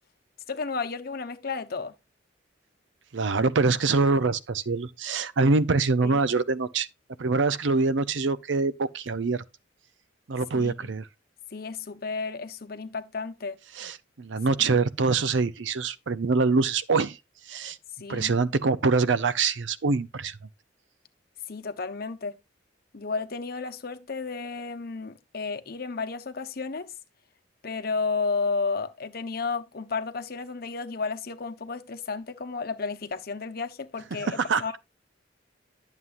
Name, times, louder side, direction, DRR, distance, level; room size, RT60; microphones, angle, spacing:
voice 1, 0.5-1.9 6.0-6.2 10.5-10.9 11.5-13.6 18.0-18.4 21.5-22.4 22.9-26.9 27.6-34.8, left 4 dB, 55° left, 0.9 m, -32 dB
voice 2, 3.1-6.9 7.2-9.4 10.3-11.0 13.8-17.2 17.5-17.8 18.1-20.4 34.2-34.8, right 4 dB, 85° right, 0.6 m, -24 dB
11.0 x 7.4 x 2.5 m
head